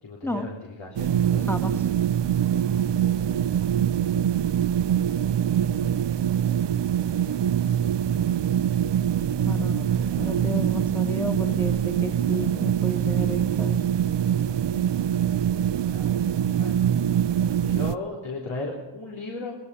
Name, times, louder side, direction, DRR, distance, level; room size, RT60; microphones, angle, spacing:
voice 1, 0.0-1.5 15.9-16.1 16.6-16.8 17.6-19.6, left 2 dB, 70° left, -2 dB, 3.8 m, -35 dB
sound 1, 1.0-18.0, right 9 dB, 60° right, 0.7 m, -24 dB
voice 2, 1.5-1.8 9.5-9.9 10.2-13.8, left 1 dB, 5° left, 5 dB, 2.0 m, -32 dB
23.5 x 19.5 x 5.7 m, 1.0 s
cardioid pair, 75°, 48 cm